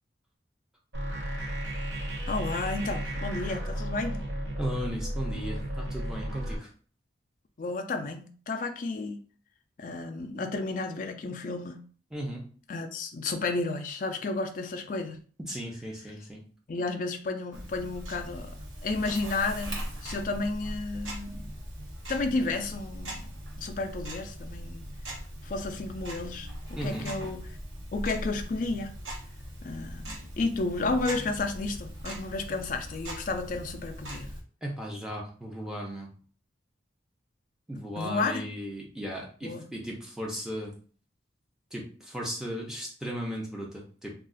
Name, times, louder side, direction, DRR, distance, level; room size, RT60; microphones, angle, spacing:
sound 1, 0.9-6.5, right 1 dB, 65° right, 0.8 m, -34 dB
voice 1, 2.3-4.2 7.6-9.2 9.8-11.8 12.7-15.2 16.7-18.5 18.8-21.5 22.1-23.3 23.6-24.9 25.4-27.5 27.9-28.9 29.6-34.3 37.8-38.5 39.4-39.6, left 3 dB, 45° left, 6 dB, 0.3 m, -32 dB
voice 2, 4.6-6.7 12.1-12.4 15.5-16.4 26.8-27.1 34.6-36.1 37.7-40.7 41.7-44.1, equal, 5° right, -2 dB, 0.6 m, -36 dB
Tick-tock, 17.5-34.4, equal, 90° right, 1.0 m, -40 dB
2.4 x 2.4 x 3.7 m, 0.43 s
head